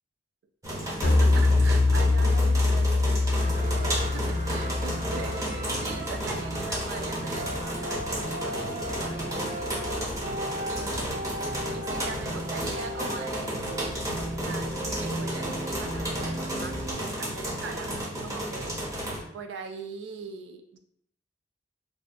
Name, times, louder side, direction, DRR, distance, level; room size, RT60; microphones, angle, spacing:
sound 1, 0.6-19.2, equal, 20° right, 0.5 m, -33 dB
sound 2, 1.0-6.4, left 2 dB, 40° left, 0.3 m, -24 dB
voice 1, 1.0-10.1 10.7-14.0 14.4-20.8, right 4 dB, 65° right, 6 dB, 0.3 m, -41 dB
sound 3, 3.3-16.9, equal, 80° right, 1.4 m, -36 dB
2.6 x 2.2 x 2.4 m, 0.69 s
head